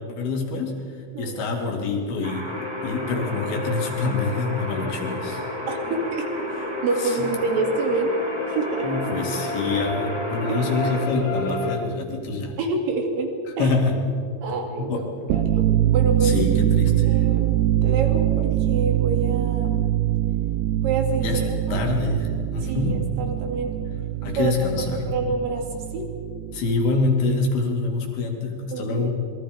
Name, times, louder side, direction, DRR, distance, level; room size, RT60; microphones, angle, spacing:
voice 1, 0.1-0.8 1.2-2.5 2.8-5.4 7.0-7.3 8.8-12.5 13.6-14.2 14.8-15.0 16.2-17.2 21.2-21.4 21.7-23.0 24.2-25.1 26.5-29.3, left 3 dB, 90° left, 1 dB, 4.5 m, -26 dB
sound 1, 2.2-11.1, right 1 dB, 20° right, 0.7 m, -36 dB
sound 2, 2.5-11.8, left 2 dB, 65° left, 3.4 m, -31 dB
voice 2, 5.7-8.1 8.5-8.9 10.5-10.6 12.6-13.3 13.6-13.8 14.4-16.3 17.0-19.9 20.8-21.8 22.6-23.7 24.4-24.5 25.1-25.6 25.9-26.1 28.7-29.1, right 3 dB, 70° right, 3 dB, 4.0 m, -27 dB
sound 3, 15.2-26.7, right 12 dB, 85° right, 2.8 m, -23 dB
26.5 x 22.0 x 5.2 m, 2.4 s
omnidirectional pair, 4.3 m